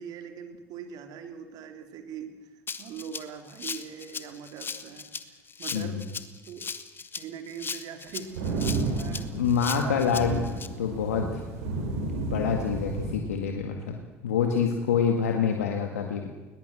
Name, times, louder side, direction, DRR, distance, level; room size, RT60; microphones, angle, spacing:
voice 1, 0.0-6.0 6.4-6.6 7.1-9.4 9.7-10.4 11.6-11.8 15.5-15.6, right 7 dB, 60° right, 7 dB, 3.3 m, -42 dB
Rattle (instrument), 2.7-10.7, left 5 dB, 30° left, 1.8 m, -37 dB
voice 2, 5.7-6.0 8.8-8.9 9.3-10.4 10.8-11.4 11.7-14.0 14.2-16.3, left 7 dB, 80° left, 3 dB, 2.0 m, -27 dB
sound 1, 8.1-13.2, right 3 dB, 75° right, 5.2 m, -32 dB
21.0 x 20.5 x 7.8 m, 1.2 s
hypercardioid pair, 70°, 8 cm